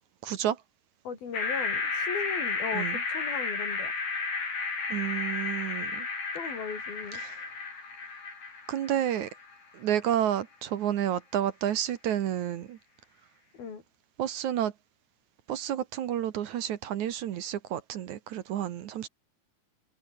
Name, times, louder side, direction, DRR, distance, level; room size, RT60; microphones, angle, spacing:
voice 1, 0.2-0.6 2.7-3.0 4.9-6.1 7.1-7.4 8.7-9.3 9.7-12.8 14.2-14.7 15.5-19.1, right 10 dB, 65° right, 2.4 m, -30 dB
voice 2, 1.0-3.9 6.3-7.2 13.6-13.8, left 6 dB, 90° left, 6.5 m, -37 dB
sound 1, 1.3-9.5, left 4 dB, 70° left, 8.0 m, -33 dB
omnidirectional pair, 4.1 m